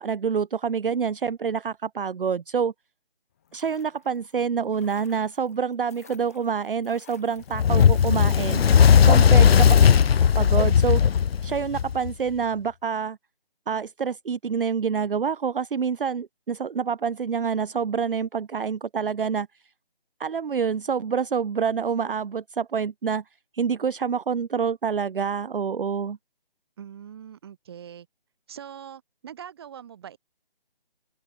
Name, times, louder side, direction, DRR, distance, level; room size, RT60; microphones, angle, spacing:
voice 1, 0.0-2.7 3.5-8.6 9.0-9.7 10.3-11.0 11.4-13.2 13.7-19.5 20.2-23.2 23.5-26.2, right 6 dB, 65° right, 0.6 m, -27 dB
sound 1, 3.3-10.5 10.8-10.9, left 9 dB, 15° left, 1.2 m, -53 dB
Fire, 7.5-12.1, left 7 dB, 85° left, 0.5 m, -17 dB
voice 2, 9.0-9.5 26.8-28.1 28.5-30.2, right 9 dB, 25° right, 4.2 m, -42 dB
open air
figure-of-eight pair, 165°, 29 cm